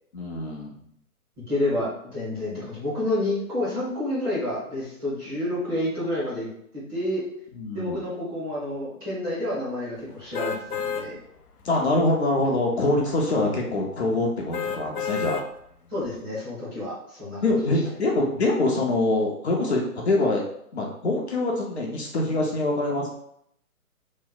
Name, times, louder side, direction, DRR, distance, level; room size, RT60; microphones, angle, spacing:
voice 1, 0.1-0.7 7.6-8.0 11.6-15.5 17.4-20.4 20.7-23.1, left 2 dB, 45° left, -1 dB, 0.7 m, -24 dB
voice 2, 1.4-6.5 6.7-7.2 7.7-11.2 15.9-17.5, left 1 dB, 10° right, -11 dB, 0.9 m, -29 dB
sound 1, 10.3-11.1 11.6-11.7 14.5-15.5 16.0-16.1, left 6 dB, 90° left, 0.5 m, -30 dB
3.1 x 2.0 x 4.0 m, 0.71 s
figure-of-eight pair, 140°, 45 cm